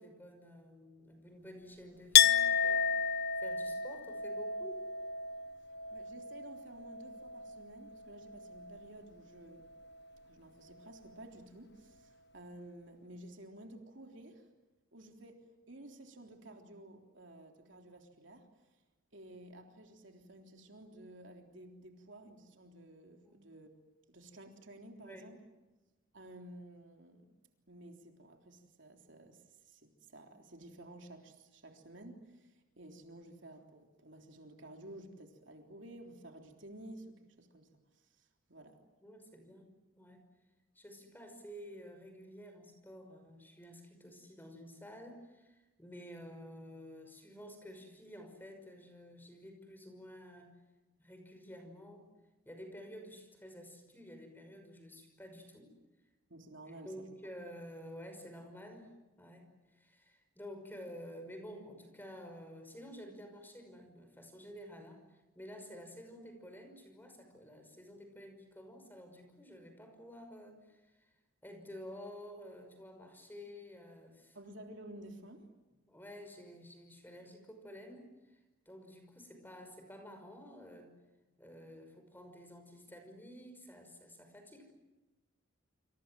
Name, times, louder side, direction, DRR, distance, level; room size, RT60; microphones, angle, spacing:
voice 1, 0.0-4.9 23.2-23.4 25.0-25.3 39.0-40.2 40.7-50.5 51.0-52.1 52.4-55.7 56.7-71.1 71.4-74.4 75.9-78.4 78.7-80.9 81.4-84.7, equal, 10° left, 6 dB, 5.7 m, -51 dB
Chink clink, 2.1-7.7 8.0-8.8, left 8 dB, 55° left, 1.1 m, -31 dB
voice 2, 5.9-9.7 10.2-14.5 14.9-18.5 19.1-23.7 24.1-25.4 26.1-27.3 27.7-38.8 56.3-57.1 74.4-75.5, right 1 dB, 60° right, 3 dB, 3.6 m, -53 dB
28.5 x 27.0 x 7.7 m, 1.1 s
head